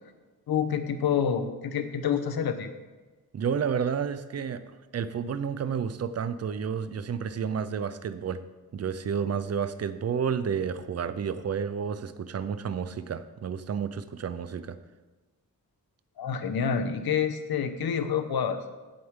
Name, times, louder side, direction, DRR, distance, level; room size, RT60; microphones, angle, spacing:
voice 1, 0.5-2.7 16.2-18.6, left 7 dB, 80° left, 8 dB, 1.1 m, -28 dB
voice 2, 3.3-4.6 4.9-8.4 8.7-14.8, right 7 dB, 45° right, 12 dB, 0.6 m, -31 dB
16.5 x 7.9 x 3.7 m, 1.3 s
wide cardioid pair, 160°, 36 cm